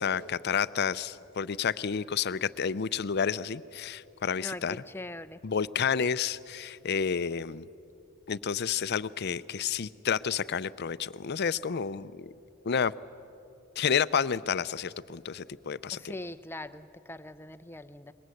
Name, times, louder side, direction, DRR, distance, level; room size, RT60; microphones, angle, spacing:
voice 1, 0.0-4.8 5.4-7.7 8.3-12.3 12.7-12.9 13.8-16.0, left 7 dB, 55° left, 16 dB, 0.5 m, -30 dB
voice 2, 4.4-5.4 15.9-18.1, left 2 dB, 10° left, 11 dB, 0.6 m, -41 dB
26.5 x 21.5 x 7.8 m, 2.8 s
head